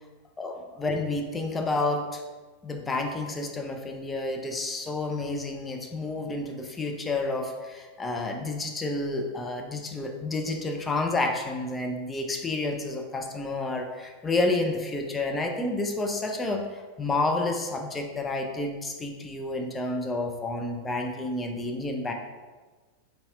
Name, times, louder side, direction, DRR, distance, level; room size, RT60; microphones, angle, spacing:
voice 1, 0.4-2.2 2.6-22.1, left 2 dB, 15° left, 3 dB, 0.4 m, -30 dB
3.9 x 2.7 x 2.4 m, 1.3 s
figure-of-eight pair, 90°, 0 cm